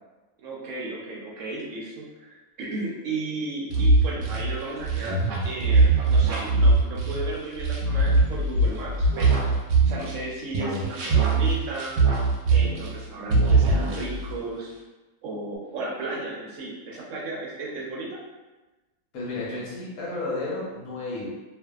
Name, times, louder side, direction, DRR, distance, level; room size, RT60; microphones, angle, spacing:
voice 1, 0.4-9.4 9.8-11.9 12.5-14.7 15.2-18.2, right 2 dB, 70° right, -3 dB, 0.9 m, -34 dB
sound 1, 3.7-10.2 10.5-13.0 13.3-14.4, right 3 dB, 90° right, 1.1 m, -21 dB
voice 2, 19.1-21.3, left 2 dB, 80° left, -5 dB, 1.2 m, -32 dB
2.5 x 2.3 x 2.3 m, 1.1 s
omnidirectional pair, 1.5 m